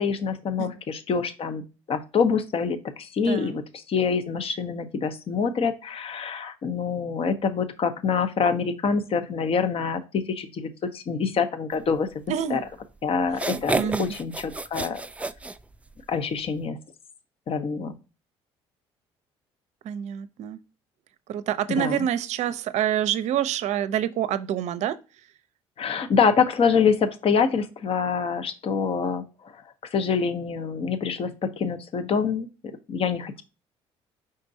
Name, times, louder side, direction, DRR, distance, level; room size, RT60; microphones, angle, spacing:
voice 1, 0.0-1.6 1.9-12.1 12.5-12.6 13.0-15.3 16.1-16.8 17.5-17.9 21.7-22.1 25.8-29.6 29.9-32.5 32.9-33.4, left 6 dB, 50° left, 0.8 m, -26 dB
voice 2, 12.3-12.6 13.4-14.0 19.8-20.6 21.3-25.0, right 10 dB, 60° right, 0.5 m, -27 dB
sound 1, 12.7-12.8 13.3-16.2, right 2 dB, 10° right, 0.3 m, -30 dB
5.2 x 3.8 x 2.7 m
hypercardioid pair, 65°, 13 cm